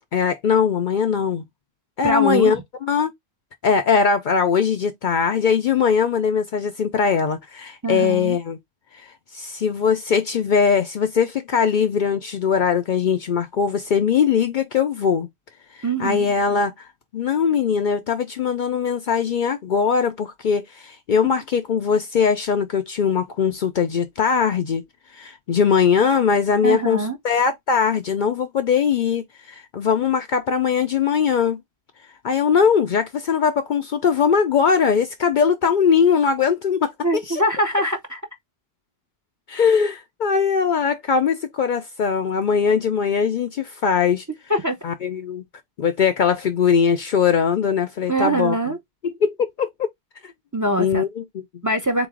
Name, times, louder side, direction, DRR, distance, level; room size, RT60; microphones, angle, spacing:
voice 1, 0.1-1.4 2.0-3.1 3.6-8.6 8.9-15.3 15.7-16.9 17.1-24.8 25.1-31.6 32.2-37.4 39.5-44.3 44.8-45.4 45.8-48.6 49.0-49.7 50.2-50.3 50.8-51.4, left 6 dB, 60° left, 0.6 m, -21 dB
voice 2, 2.0-2.6 7.8-8.4 15.8-16.3 26.6-27.2 37.0-38.2 44.5-44.8 48.1-48.8 50.5-51.0 51.6-52.1, right 1 dB, 20° right, 0.6 m, -23 dB
3.9 x 3.0 x 3.6 m
omnidirectional pair, 1.1 m